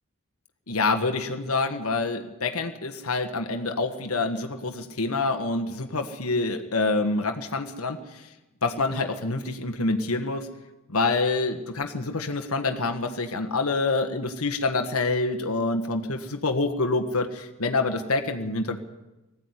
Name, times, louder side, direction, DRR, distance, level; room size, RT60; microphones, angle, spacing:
voice 1, 0.7-8.3 8.6-10.5 10.9-18.8, left 3 dB, 85° left, 5 dB, 1.6 m, -27 dB
20.5 x 15.0 x 9.8 m, 1.0 s
head